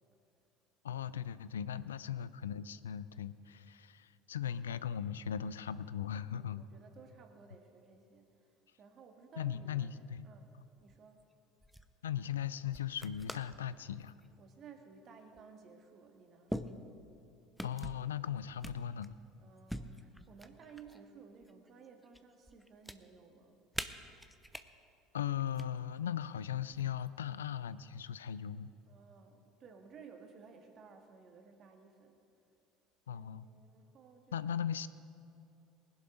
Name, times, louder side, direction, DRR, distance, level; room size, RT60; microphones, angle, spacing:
voice 1, 0.8-6.6 9.4-10.3 12.0-14.1 17.6-19.2 25.1-28.7 33.1-33.5 34.3-34.9, left 9 dB, 85° left, 16 dB, 0.3 m, -38 dB
voice 2, 6.3-9.9 10.2-10.5 10.8-11.2 14.4-16.6 19.4-23.6 28.9-32.2 33.1-34.6, right 5 dB, 45° right, 4 dB, 1.7 m, -57 dB
sound 1, 10.8-11.2 11.6-11.9 12.7-13.6 14.0-14.3 15.4-15.5 16.5-17.2 17.6-18.1 18.6-19.2 19.7-21.0 21.4-22.2 22.5-23.0 23.7-24.6 25.4-25.6 26.7-27.2, equal, ahead, 0.7 m, -44 dB
19.5 x 11.0 x 3.8 m, 2.6 s
hypercardioid pair, 70°, 0 cm